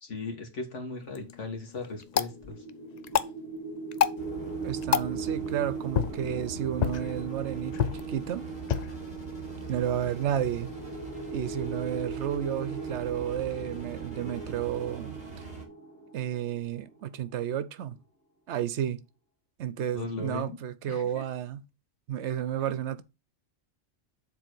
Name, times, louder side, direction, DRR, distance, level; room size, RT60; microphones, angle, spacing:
voice 1, 0.0-2.6 19.9-20.6 20.9-21.2 22.7-22.8, left 3 dB, 65° left, 2.2 m, -38 dB
sound 1, 1.0-11.0, left 9 dB, 85° left, 0.3 m, -33 dB
sound 2, 2.1-17.2, right 4 dB, 5° left, 3.3 m, -39 dB
sound 3, 4.2-15.6, right 3 dB, 30° left, 3.1 m, -44 dB
voice 2, 4.6-8.5 9.7-10.7 11.3-15.2 16.1-18.0 18.5-19.0 19.6-21.6 22.1-23.0, right 10 dB, 65° right, 0.9 m, -32 dB
6.9 x 4.1 x 6.2 m
omnidirectional pair, 1.3 m